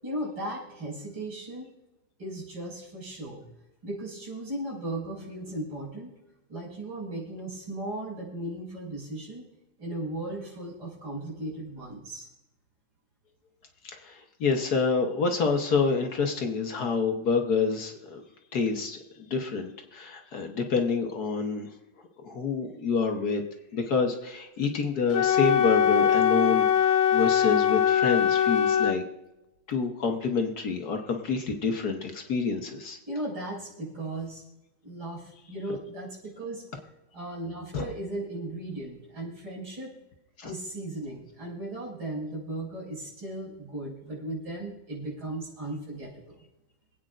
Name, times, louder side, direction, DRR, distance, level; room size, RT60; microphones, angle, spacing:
voice 1, 0.0-1.7 2.2-3.5 3.8-6.1 6.5-9.5 9.8-12.3 33.1-34.4 34.8-36.6 37.1-39.9 40.4-46.5, right 1 dB, 80° right, -4 dB, 6.0 m, -36 dB
voice 2, 13.9-18.2 18.5-21.7 22.2-23.4 23.7-29.0 29.7-33.0 37.7-37.8 40.4-40.5, left 4 dB, 55° left, 3 dB, 1.5 m, -28 dB
Wind instrument woodwind instrument, 25.1-29.0, left 9 dB, 80° left, 1.5 m, -22 dB
26.5 x 8.9 x 2.5 m, 0.98 s
omnidirectional pair, 2.2 m